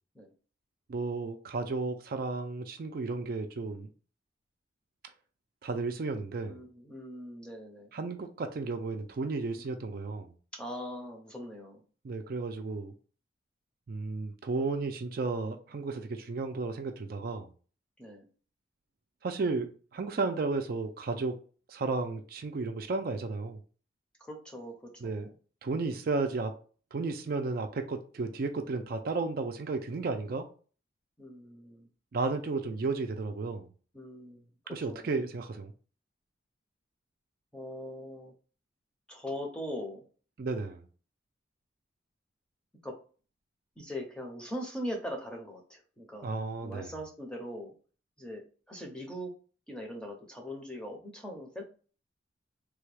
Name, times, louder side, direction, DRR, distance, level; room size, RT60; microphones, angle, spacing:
voice 1, 0.9-3.9 5.6-6.6 7.9-10.3 12.0-12.9 13.9-17.5 19.2-19.7 19.9-21.3 21.7-23.6 25.0-25.3 25.6-26.5 26.9-30.5 32.1-33.7 34.7-35.7 40.4-40.9 46.2-46.9, right 3 dB, 50° right, 0.4 m, -33 dB
voice 2, 6.4-7.9 10.5-11.8 18.0-18.3 24.2-24.7 25.0-25.3 31.2-31.9 33.9-35.1 37.5-38.3 39.1-40.1 42.8-43.0 43.8-46.3 46.6-47.7 48.2-49.3 49.7-51.6, equal, 5° left, 0.6 m, -41 dB
3.3 x 2.3 x 3.2 m
head